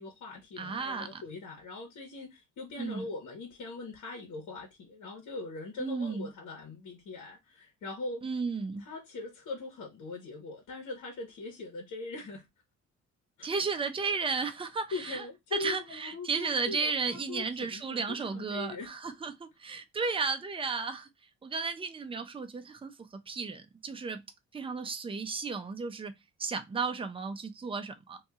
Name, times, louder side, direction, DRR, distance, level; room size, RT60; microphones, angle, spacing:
voice 1, 0.0-8.2 8.8-12.4 13.4-13.5 14.9-18.9 20.0-20.1, left 3 dB, 70° left, 1.4 m, -41 dB
voice 2, 0.6-1.2 2.8-3.1 5.8-6.3 8.2-8.9 13.4-15.2 15.5-21.1 21.4-24.2 24.5-28.2, right 4 dB, 20° right, 0.6 m, -34 dB
2.8 x 2.7 x 3.5 m
cardioid pair, 90°, 30 cm